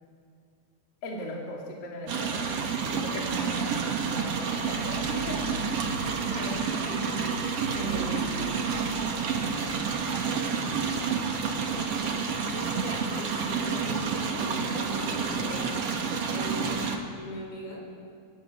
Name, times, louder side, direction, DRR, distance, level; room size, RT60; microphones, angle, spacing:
voice 1, 1.0-2.4 2.8-5.4, equal, 45° left, -2 dB, 4.4 m, -38 dB
sound 1, 2.1-17.0, right 5 dB, 55° right, 1.9 m, -29 dB
voice 2, 6.2-8.4 12.5-17.8, left 1 dB, 80° left, 0 dB, 7.9 m, -39 dB
23.0 x 22.0 x 8.2 m, 2.2 s
omnidirectional pair, 5.8 m